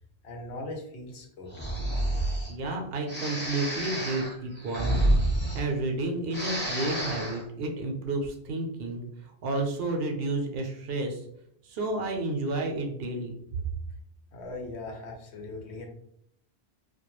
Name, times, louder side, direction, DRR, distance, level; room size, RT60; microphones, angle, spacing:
voice 1, 0.2-1.5 14.3-15.9, left 2 dB, 85° left, 2 dB, 0.9 m, -39 dB
Breathing, 1.5-2.5 3.1-6.0 6.3-7.4, right 1 dB, 10° left, 0.7 m, -29 dB
voice 2, 2.5-11.2 11.6-13.4, right 2 dB, 70° right, 3 dB, 0.7 m, -31 dB
2.2 x 2.1 x 2.9 m, 0.71 s
omnidirectional pair, 1.1 m